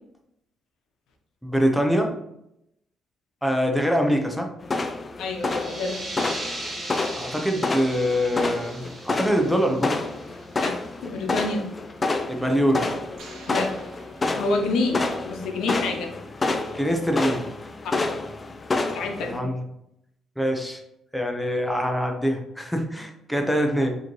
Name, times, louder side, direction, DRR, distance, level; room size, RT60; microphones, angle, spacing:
voice 1, 1.4-2.1 3.4-4.5 7.2-10.0 12.3-12.9 16.7-17.5 19.2-19.6 20.4-20.8 21.1-24.0, equal, ahead, 3 dB, 0.7 m, -24 dB
sound 1, 4.6-19.4, left 3 dB, 30° left, 0.4 m, -29 dB
voice 2, 5.2-6.0 10.6-10.7 11.0-11.6 13.5-13.7 14.4-15.0 15.3-16.1 17.8-18.1 18.9-19.4, left 3 dB, 80° left, 2 dB, 0.8 m, -27 dB
sound 2, 5.4-10.8, right 1 dB, 25° right, 1.1 m, -38 dB
sound 3, 13.2-15.1, right 3 dB, 75° right, 0.9 m, -48 dB
4.9 x 3.0 x 3.1 m, 0.79 s
cardioid pair, 90°, 0 cm